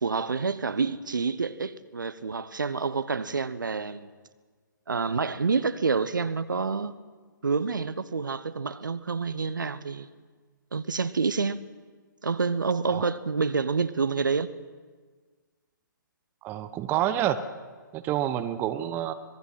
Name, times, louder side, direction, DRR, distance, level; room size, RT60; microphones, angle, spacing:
voice 1, 0.0-4.1 4.9-6.9 7.4-10.1 10.7-11.6 12.2-14.5, right 4 dB, 70° right, 1.0 m, -28 dB
voice 2, 16.4-17.4 17.9-19.1, right 12 dB, 20° right, 0.8 m, -28 dB
26.0 x 19.5 x 5.8 m
figure-of-eight pair, 130°, 11 cm